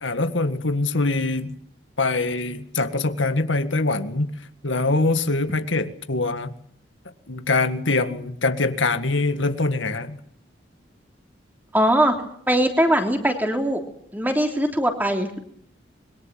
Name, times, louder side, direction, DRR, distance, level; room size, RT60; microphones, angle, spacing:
voice 1, 0.0-1.6 2.0-4.3 4.6-6.5 7.3-10.2, left 3 dB, 85° left, 9 dB, 1.9 m, -23 dB
voice 2, 11.7-12.1 12.5-13.8 14.1-15.4, right 1 dB, 10° right, 4 dB, 3.2 m, -21 dB
26.0 x 22.5 x 7.6 m, 0.68 s
head